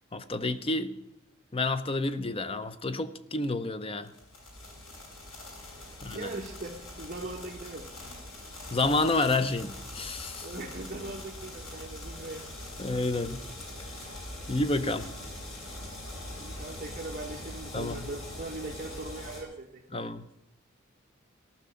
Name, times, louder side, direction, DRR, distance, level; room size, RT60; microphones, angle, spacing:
voice 1, 0.1-0.9 1.5-4.1 6.0-6.3 8.7-10.5 12.8-13.4 14.5-15.1 17.7-18.1 19.9-20.3, left 2 dB, 25° left, 0.6 m, -29 dB
sound 1, 4.0-19.4, left 1 dB, 75° left, 6.6 m, -43 dB
voice 2, 6.1-6.7 7.0-8.1 10.4-12.5 16.4-20.0, right 2 dB, 40° right, 1.3 m, -40 dB
14.5 x 6.1 x 9.7 m
head